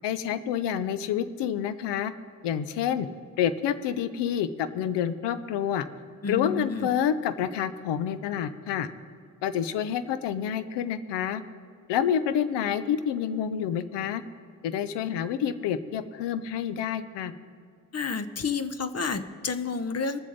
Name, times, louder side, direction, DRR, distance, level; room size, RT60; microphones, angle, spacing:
voice 1, 0.0-2.1 2.4-3.1 3.4-5.9 6.3-8.9 9.4-11.4 11.9-14.2 14.6-17.3, left 9 dB, 80° left, 13 dB, 0.7 m, -28 dB
voice 2, 6.2-6.9 17.9-20.2, left 4 dB, 35° left, 11 dB, 0.9 m, -30 dB
20.0 x 7.4 x 4.0 m, 2.2 s
supercardioid pair, 40°, 41 cm